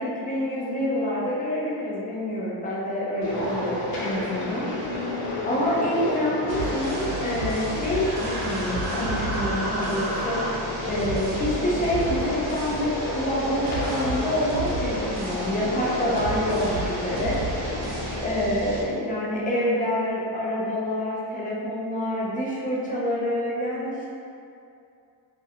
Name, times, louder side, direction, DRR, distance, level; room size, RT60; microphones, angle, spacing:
voice 1, 0.0-4.7 5.5-17.9 18.2-24.1, left 1 dB, 20° left, -6 dB, 0.4 m, -27 dB
sound 1, 3.2-18.2, left 1 dB, 85° left, 0.8 m, -31 dB
sound 2, 6.5-18.8, right 1 dB, 80° right, 0.7 m, -33 dB
Human voice, 7.7-10.5, right 1 dB, 40° right, 0.6 m, -33 dB
3.1 x 2.5 x 2.7 m, 2.6 s
cardioid pair, 165°, 45 cm